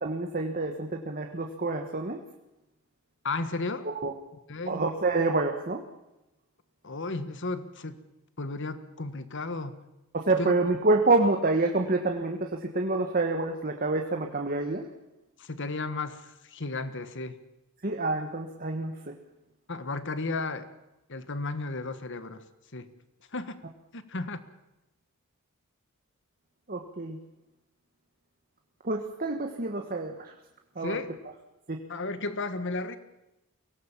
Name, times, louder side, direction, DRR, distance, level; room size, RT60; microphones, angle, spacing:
voice 1, 0.0-2.2 4.0-4.1 4.7-5.8 10.1-14.8 17.8-19.1 26.7-27.2 28.8-30.3 30.7-31.0 31.7-31.8, right 3 dB, 40° right, 4 dB, 1.4 m, -27 dB
voice 2, 3.2-3.9 4.5-4.8 6.8-8.0 8.4-9.8 10.4-10.5 15.4-17.4 19.7-20.7 21.1-22.4 22.7-22.9 23.3-23.6 23.9-24.4 30.8-31.2 31.9-33.0, left 3 dB, 55° left, 12 dB, 1.5 m, -34 dB
23.5 x 17.5 x 7.4 m, 0.96 s
head